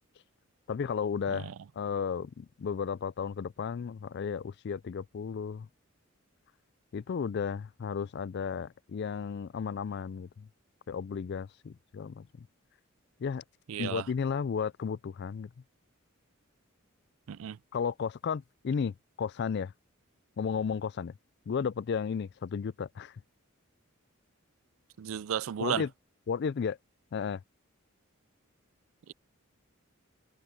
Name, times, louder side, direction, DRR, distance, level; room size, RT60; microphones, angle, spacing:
voice 1, 0.7-1.5 1.8-5.7 6.9-10.5 10.9-12.5 13.2-13.4 13.8-15.5 17.7-19.7 20.4-21.1 21.5-23.1 25.6-25.9 26.3-26.8 27.1-27.4, left 6 dB, 50° left, 0.3 m, -33 dB
voice 2, 13.7-14.1 17.3-17.6 25.0-25.8 29.1-29.2, right 9 dB, 70° right, 0.4 m, -34 dB
head